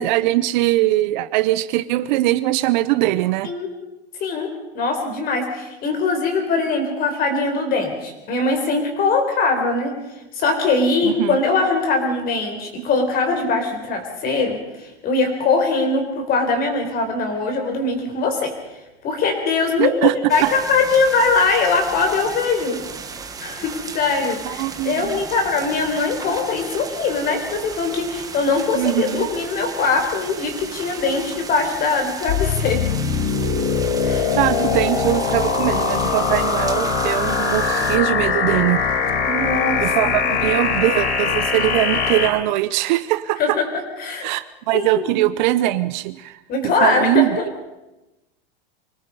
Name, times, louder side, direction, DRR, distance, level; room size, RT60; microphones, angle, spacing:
voice 1, 0.0-3.5 11.0-11.4 19.8-20.5 24.4-25.2 28.7-29.3 34.1-38.8 39.8-43.6 44.2-46.4 46.8-47.4, right 16 dB, 50° right, 14 dB, 0.7 m, -21 dB
voice 2, 4.2-9.9 10.3-18.5 19.0-22.8 23.4-32.8 34.0-34.3 39.2-40.6 43.4-44.3 44.7-45.2 46.5-47.3, left 3 dB, 30° left, 5 dB, 4.3 m, -21 dB
sound 1, 20.3-38.0, right 5 dB, 10° right, 1.3 m, -35 dB
sound 2, 32.3-42.3, left 6 dB, 80° left, 4.2 m, -21 dB
25.0 x 18.5 x 5.5 m, 0.99 s
supercardioid pair, 155°, 31 cm